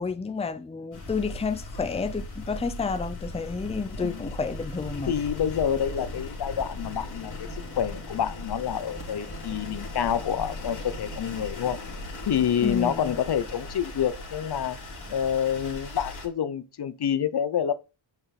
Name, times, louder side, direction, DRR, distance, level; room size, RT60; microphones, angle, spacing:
voice 1, 0.0-5.1 12.6-13.1, left 4 dB, 15° left, 0.6 m, -30 dB
sound 1, 0.9-16.3, left 2 dB, 40° left, 3.0 m, -38 dB
voice 2, 5.1-7.5 7.8-11.8 12.3-14.8 15.1-17.7, left 9 dB, 55° left, 0.8 m, -27 dB
8.4 x 5.5 x 4.2 m
wide cardioid pair, 155°, 46 cm